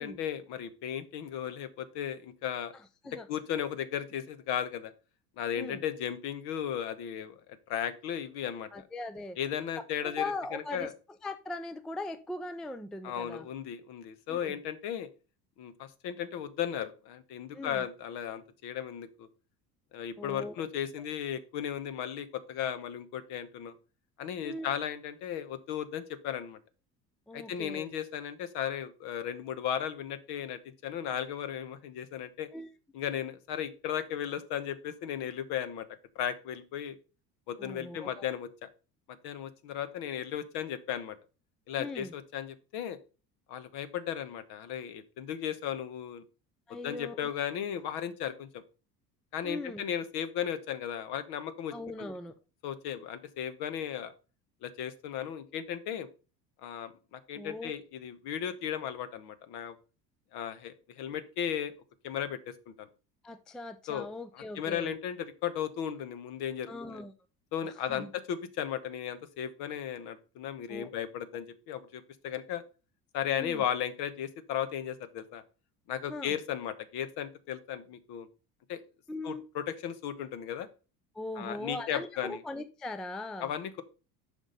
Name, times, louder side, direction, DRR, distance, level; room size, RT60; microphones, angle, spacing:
voice 1, 0.0-2.7 3.3-4.9 5.4-7.4 7.7-8.8 9.3-10.9 13.0-15.1 15.6-19.3 19.9-23.7 24.2-26.6 27.3-32.5 32.9-35.9 36.1-37.0 37.5-38.7 39.2-41.2 41.7-43.0 43.5-46.2 46.8-48.6 49.3-52.1 52.6-54.1 54.6-56.1 56.6-59.8 60.3-61.7 62.0-62.9 63.9-64.1 64.3-67.0 67.5-72.6 73.1-75.4 75.9-78.3 78.7-78.8 79.2-80.7 81.4-82.4 83.4-83.8, left 9 dB, 50° left, 1.2 m, -36 dB
voice 2, 8.7-9.4 10.0-10.9 11.2-13.5 14.3-14.6 17.5-17.9 20.2-20.7 24.4-24.7 27.3-27.9 32.5-32.7 37.6-38.3 41.8-42.1 46.7-47.3 49.4-49.8 51.7-52.3 57.4-57.8 63.2-64.9 66.7-67.1 67.6-68.1 70.7-70.9 73.3-73.6 76.1-76.4 79.1-79.4 81.1-83.5, left 2 dB, ahead, 0.4 m, -40 dB
7.1 x 5.4 x 5.3 m
hypercardioid pair, 70°, 49 cm